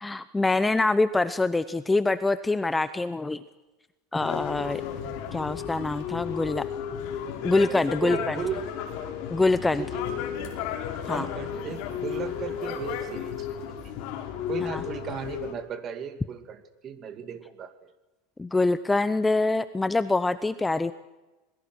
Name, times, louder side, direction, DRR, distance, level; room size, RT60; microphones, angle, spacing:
voice 1, 0.0-3.4 4.1-4.8 5.3-6.7 7.4-8.4 9.3-9.8 11.1-11.3 14.7-14.8 18.4-20.9, left 2 dB, 10° left, 13 dB, 0.8 m, -25 dB
sound 1, 4.2-15.5, left 9 dB, 55° left, 5.3 m, -33 dB
voice 2, 8.0-8.7 9.8-10.0 11.1-14.1 14.5-17.9, right 7 dB, 35° right, 9 dB, 2.5 m, -36 dB
27.5 x 21.5 x 6.3 m, 1.1 s
supercardioid pair, 140°, 0 cm